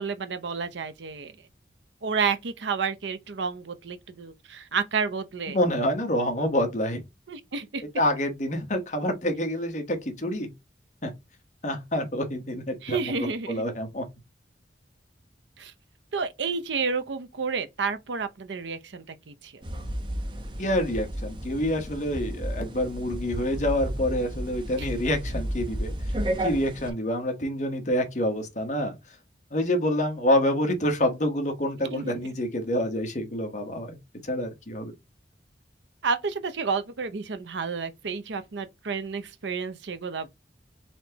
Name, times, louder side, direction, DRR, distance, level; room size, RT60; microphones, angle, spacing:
voice 1, 0.0-1.3 2.0-5.6 7.3-7.8 12.8-13.6 15.6-15.7 16.1-19.6 24.8-24.9 31.9-32.1 36.0-40.3, right 5 dB, 90° right, 0.6 m, -30 dB
voice 2, 5.5-7.0 8.0-10.5 11.0-11.1 11.6-14.1 20.6-25.9 26.4-29.0 29.5-34.0 34.2-34.9, left 1 dB, 45° left, 1.1 m, -27 dB
sound 1, 19.6-26.9, equal, 30° right, 0.8 m, -32 dB
4.3 x 3.3 x 2.9 m
head